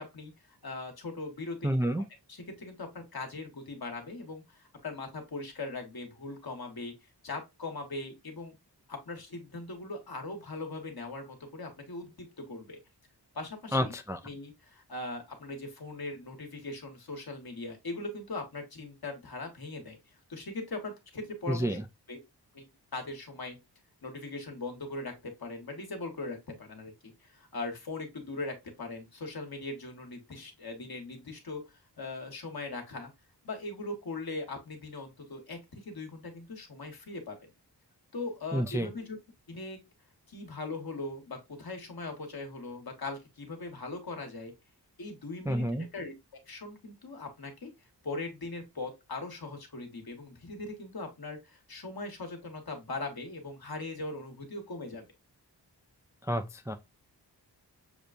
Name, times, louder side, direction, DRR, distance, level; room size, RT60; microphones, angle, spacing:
voice 1, 0.0-6.9 7.2-8.5 8.9-12.8 13.3-13.9 14.2-20.0 20.3-21.8 22.1-22.2 22.5-23.6 24.0-33.1 33.4-37.5 38.1-39.2 39.5-39.8 40.3-44.5 45.0-46.1 46.5-47.7 48.0-55.1, left 3 dB, 60° left, 1.3 m, -40 dB
voice 2, 1.6-2.0 13.7-14.2 21.5-21.8 38.5-38.9 45.5-45.9 56.2-56.8, equal, 10° right, 0.3 m, -29 dB
6.7 x 2.2 x 2.5 m
wide cardioid pair, 65°, 41 cm